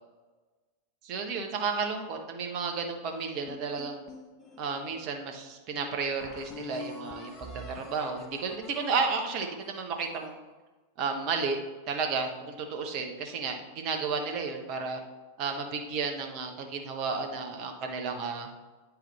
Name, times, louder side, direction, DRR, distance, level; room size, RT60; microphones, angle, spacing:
voice 1, 1.0-4.0 4.6-10.4 11.0-11.6 11.9-15.0 15.4-18.5, right 4 dB, 40° right, 3 dB, 1.0 m, -32 dB
sound 1, 3.5-5.0 5.6-5.7 6.2-10.4, left 3 dB, 25° left, 1.3 m, -46 dB
9.2 x 3.9 x 4.2 m, 1.3 s
figure-of-eight pair, 90°, 0 cm